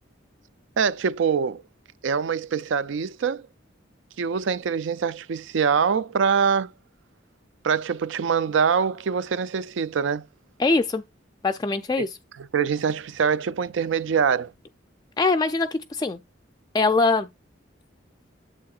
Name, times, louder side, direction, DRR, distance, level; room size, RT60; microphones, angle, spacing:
voice 1, 0.8-1.6 2.0-3.5 4.2-6.7 7.6-10.2 12.5-14.5, right 6 dB, 75° right, 0.4 m, -24 dB
voice 2, 10.6-11.0 11.4-12.2 15.2-16.2 16.7-17.3, left 3 dB, 20° left, 0.3 m, -22 dB
8.6 x 7.5 x 2.4 m
head